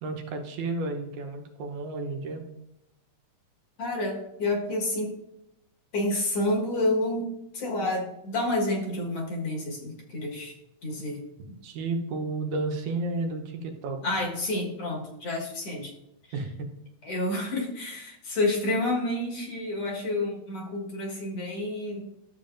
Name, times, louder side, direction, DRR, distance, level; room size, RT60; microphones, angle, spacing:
voice 1, 0.0-2.4 11.6-14.0 16.3-16.7, right 3 dB, 80° right, 3 dB, 2.4 m, -32 dB
voice 2, 3.8-5.1 5.9-10.5 10.8-11.2 14.0-15.9 17.0-22.0, left 1 dB, 55° left, -1 dB, 2.4 m, -29 dB
12.5 x 7.2 x 2.6 m, 0.83 s
omnidirectional pair, 3.4 m